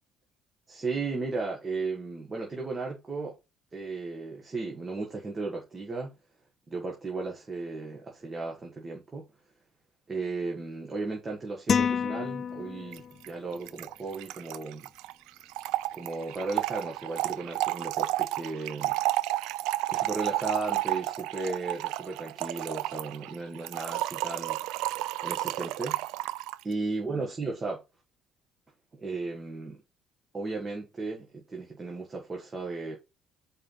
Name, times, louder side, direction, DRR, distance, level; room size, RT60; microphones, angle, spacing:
voice 1, 0.7-3.4 3.7-6.1 6.7-9.3 10.1-14.9 15.9-19.0 19.9-24.6 25.2-26.0 26.6-27.8 28.9-29.8 30.3-33.0, right 3 dB, 25° right, 1.7 m, -35 dB
sound 1, 11.7-13.2, left 7 dB, 35° left, 0.3 m, -28 dB
Trickle dribble / Fill (with liquid), 12.9-13.0 13.2-13.3 13.5-26.6, right 16 dB, 90° right, 0.4 m, -32 dB
5.0 x 4.3 x 5.5 m
cardioid pair, 130°, 0 cm